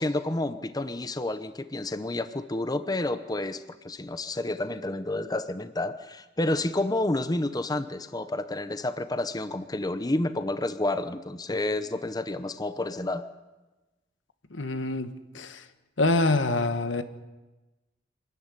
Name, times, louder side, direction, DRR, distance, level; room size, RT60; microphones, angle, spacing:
voice 1, 0.0-13.3, left 2 dB, 20° left, 11 dB, 0.8 m, -30 dB
voice 2, 14.5-15.6 16.0-17.0, left 2 dB, 85° left, 10 dB, 1.5 m, -26 dB
25.5 x 13.5 x 9.9 m, 1.1 s
head